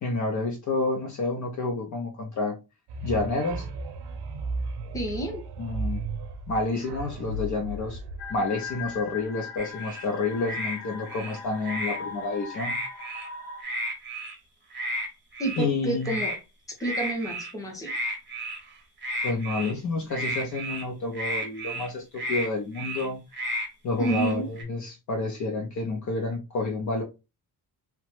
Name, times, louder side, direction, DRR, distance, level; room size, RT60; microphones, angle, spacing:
voice 1, 0.0-2.6 3.0-3.7 5.6-6.0 6.5-8.0 8.3-12.8 15.6-16.2 19.2-23.2 23.8-27.0, left 3 dB, 50° left, 0.5 m, -29 dB
sound 1, 2.9-9.1, right 2 dB, 75° right, 0.6 m, -35 dB
voice 2, 4.9-5.4 15.4-16.3 16.8-17.9 24.0-24.5, right 1 dB, 10° left, 0.7 m, -29 dB
sound 2, 8.2-13.6, left 5 dB, 80° left, 0.9 m, -40 dB
sound 3, 9.6-10.0 10.4-10.8 11.1-12.0 12.5-13.3 13.6-14.4 14.7-15.1 15.3-15.6 16.0-16.4 16.8-17.5 17.8-18.7 19.0-19.7 20.1-20.8 21.1-21.9 22.2-22.5 22.7-23.1 23.3-23.7 24.0-24.6, equal, 30° right, 0.7 m, -32 dB
3.0 x 2.1 x 3.1 m
wide cardioid pair, 165°, 40 cm